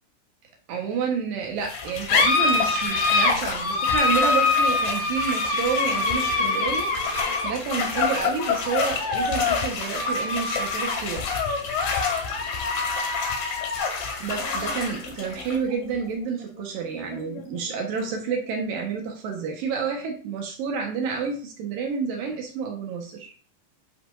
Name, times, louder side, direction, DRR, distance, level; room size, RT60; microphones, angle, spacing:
voice 1, 0.7-6.9 7.2-11.3 14.2-23.3, right 6 dB, 70° right, 1 dB, 2.2 m, -29 dB
sound 1, 1.6-18.6, left 4 dB, 60° left, 2.6 m, -25 dB
sound 2, 2.4-15.6, left 7 dB, 85° left, 4.9 m, -48 dB
11.0 x 4.4 x 2.6 m, 0.40 s
omnidirectional pair, 5.8 m